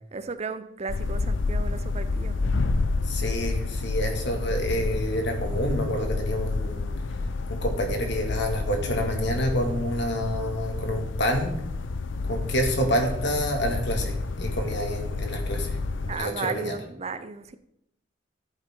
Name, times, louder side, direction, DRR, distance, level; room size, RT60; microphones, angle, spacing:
voice 1, 0.1-2.6 16.1-17.6, right 4 dB, 35° right, 0.6 m, -35 dB
sound 1, 0.9-16.1, left 3 dB, 80° left, 0.6 m, -29 dB
voice 2, 3.0-6.9 7.5-11.5 12.3-15.8 16.1-16.8, equal, 65° left, 2.0 m, -28 dB
14.0 x 8.1 x 3.7 m
head